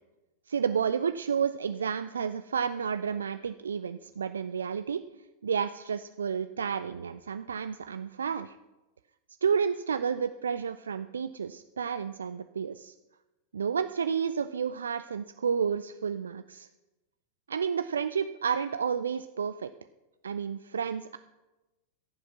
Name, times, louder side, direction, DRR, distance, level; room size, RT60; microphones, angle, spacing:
voice 1, 0.5-5.0 5.4-8.6 9.4-12.9 13.5-16.7 17.5-19.7 20.2-21.2, right 6 dB, 70° right, 12 dB, 0.3 m, -31 dB
15.0 x 7.1 x 6.0 m, 1.1 s
figure-of-eight pair, 90°, 0 cm